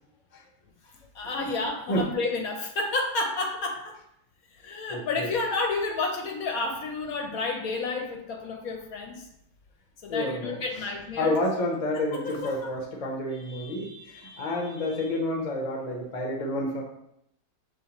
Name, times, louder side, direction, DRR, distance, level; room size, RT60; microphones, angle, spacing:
voice 1, 1.1-4.0 4.6-9.3 10.0-11.4 12.1-12.7, left 3 dB, 70° left, 3 dB, 0.9 m, -30 dB
voice 2, 4.9-5.3 10.1-10.5 11.2-16.8, left 1 dB, 45° left, 0 dB, 0.5 m, -29 dB
6.5 x 2.7 x 2.9 m, 0.78 s
omnidirectional pair, 1.8 m